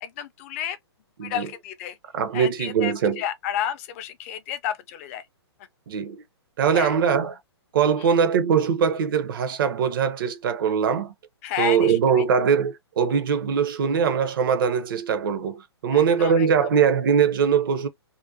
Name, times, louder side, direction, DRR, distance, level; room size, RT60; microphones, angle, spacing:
voice 1, 0.0-0.8 1.2-2.0 2.3-5.3 6.7-7.0 8.0-8.1 11.4-12.2 15.9-16.7, left 10 dB, 30° left, 0.4 m, -31 dB
voice 2, 2.1-3.2 5.9-6.2 6.6-7.4 7.7-11.1 11.6-17.9, right 7 dB, 50° right, 0.6 m, -22 dB
2.5 x 2.1 x 2.6 m
figure-of-eight pair, 125°, 14 cm